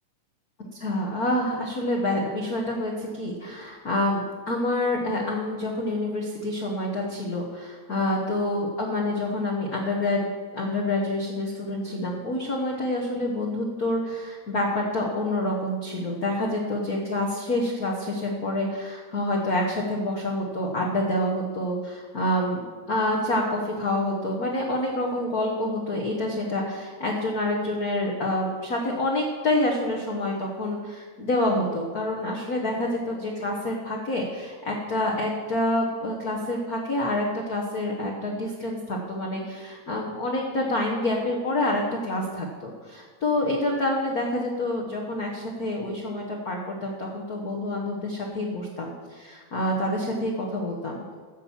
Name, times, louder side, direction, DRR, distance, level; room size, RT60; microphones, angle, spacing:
voice 1, 0.7-4.2 4.5-22.6 22.9-51.1, left 1 dB, 75° left, -2 dB, 0.8 m, -27 dB
11.0 x 7.0 x 7.3 m, 1.5 s
omnidirectional pair, 3.5 m